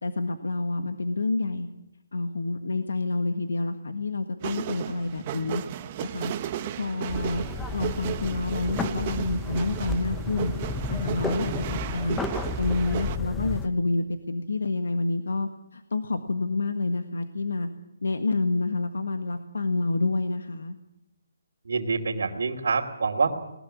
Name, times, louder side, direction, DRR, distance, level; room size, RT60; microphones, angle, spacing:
voice 1, 0.0-1.7 2.1-5.6 6.0-6.3 6.7-7.4 7.7-10.5 10.9-12.2 12.6-17.7 18.0-20.8, left 3 dB, 85° left, 7 dB, 1.6 m, -28 dB
sound 1, 4.4-13.2, right 11 dB, 30° right, 1.0 m, -35 dB
sound 2, 7.1-13.7, left 3 dB, 5° left, 0.8 m, -32 dB
voice 2, 21.6-23.4, right 4 dB, 75° right, -2 dB, 2.7 m, -26 dB
20.0 x 20.0 x 7.4 m, 0.89 s
hypercardioid pair, 160°, 0 cm